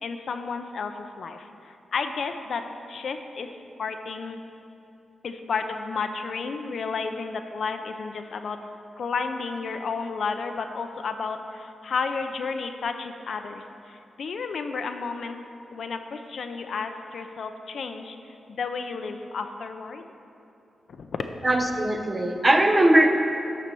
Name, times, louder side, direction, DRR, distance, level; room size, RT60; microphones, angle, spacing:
voice 1, 0.0-2.6 2.9-3.5 3.8-4.4 5.2-8.6 9.0-15.4 15.7-18.2 18.6-20.0 20.9-21.2, left 5 dB, 70° left, 6 dB, 0.5 m, -32 dB
voice 2, 21.4-23.1, right 1 dB, 25° right, 4 dB, 0.6 m, -20 dB
11.5 x 4.3 x 6.7 m, 2.7 s
wide cardioid pair, 110°, 0 cm